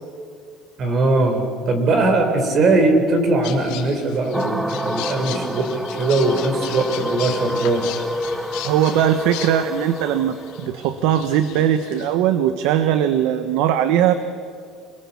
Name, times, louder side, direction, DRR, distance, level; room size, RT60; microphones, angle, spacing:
voice 1, 0.8-7.8, right 2 dB, 35° right, 6 dB, 3.8 m, -20 dB
sound 1, 3.4-12.1, left 11 dB, 80° left, 2.7 m, -36 dB
sound 2, 4.3-13.2, equal, 5° right, 0.8 m, -29 dB
voice 2, 8.6-14.1, right 10 dB, 75° right, 10 dB, 1.1 m, -19 dB
27.0 x 21.5 x 7.2 m, 2.2 s
cardioid pair, 165°, 0 cm